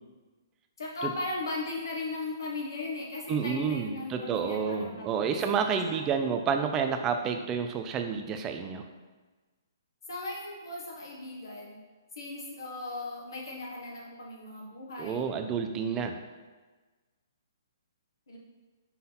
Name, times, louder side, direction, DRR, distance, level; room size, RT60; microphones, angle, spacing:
voice 1, 0.8-5.1 5.7-6.0 10.1-11.8 12.2-15.2 18.3-18.4, left 2 dB, 85° left, -3 dB, 1.5 m, -37 dB
voice 2, 3.3-8.8 15.0-16.1, right 6 dB, 15° right, 6 dB, 0.5 m, -29 dB
5.7 x 4.0 x 5.8 m, 1.3 s
hypercardioid pair, 160°, 2 cm